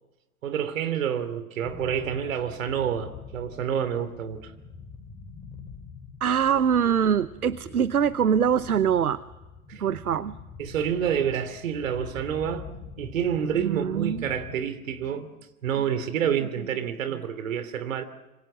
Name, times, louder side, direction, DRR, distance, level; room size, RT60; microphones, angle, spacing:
voice 1, 0.4-4.5 9.7-9.8 10.6-15.3 15.6-18.0, right 8 dB, 60° right, 3.0 m, -28 dB
sound 1, 1.6-14.5, left 5 dB, 15° left, 4.4 m, -45 dB
voice 2, 6.2-9.2 9.8-10.4 13.6-14.3, right 8 dB, 80° right, 0.9 m, -23 dB
26.5 x 25.5 x 7.4 m
figure-of-eight pair, 100°, 44 cm